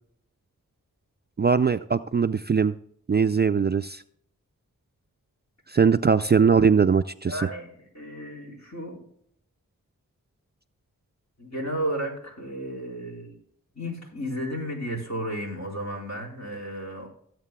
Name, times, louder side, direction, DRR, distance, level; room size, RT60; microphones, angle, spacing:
voice 1, 1.4-2.7 3.1-4.0 5.7-7.3, right 6 dB, 30° right, 11 dB, 0.4 m, -21 dB
voice 2, 7.3-9.0 11.4-13.4 13.7-17.1, equal, 55° left, -2 dB, 4.4 m, -33 dB
16.5 x 8.2 x 2.3 m, 0.67 s
cardioid pair, 40°, 34 cm